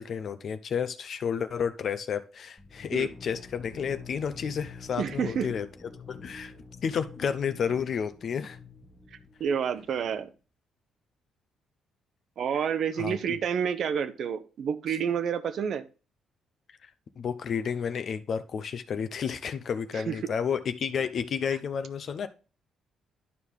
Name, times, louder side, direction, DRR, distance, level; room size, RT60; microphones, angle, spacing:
voice 1, 0.0-5.7 6.1-6.5 6.8-8.6 13.0-13.2 16.8-16.9 17.2-22.3, left 7 dB, 55° left, 0.7 m, -31 dB
sound 1, 2.6-10.2, left 5 dB, 20° left, 1.2 m, -47 dB
voice 2, 5.0-5.5 9.4-10.3 12.4-15.8 19.9-20.1, right 7 dB, 65° right, 0.8 m, -29 dB
11.0 x 4.8 x 3.5 m
cardioid pair, 90°, 0 cm